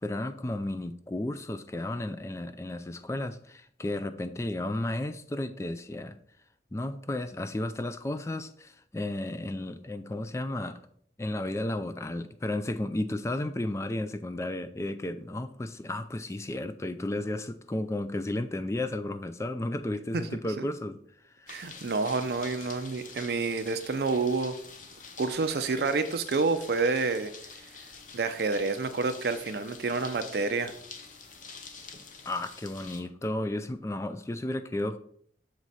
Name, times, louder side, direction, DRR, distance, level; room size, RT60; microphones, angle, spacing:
voice 1, 0.0-6.2 6.7-10.8 11.2-21.0 21.4-21.6 32.3-35.0, left 1 dB, 15° left, 11 dB, 0.3 m, -33 dB
sound 1, 21.5-33.0, left 5 dB, 45° left, 0.8 m, -47 dB
voice 2, 21.5-24.6 25.2-27.3 28.1-30.7, right 4 dB, 65° right, 9 dB, 0.5 m, -28 dB
6.6 x 4.7 x 4.0 m, 0.64 s
head